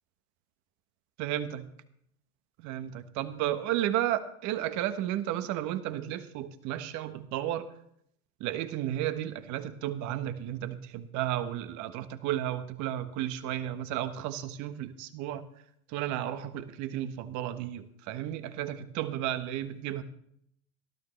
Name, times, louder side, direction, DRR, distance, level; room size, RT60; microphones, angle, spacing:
voice 1, 1.2-1.6 2.6-7.7 8.4-15.4 15.9-20.0, right 12 dB, 45° right, 11 dB, 1.3 m, -33 dB
18.5 x 12.0 x 3.3 m, 0.72 s
hypercardioid pair, 100°, 42 cm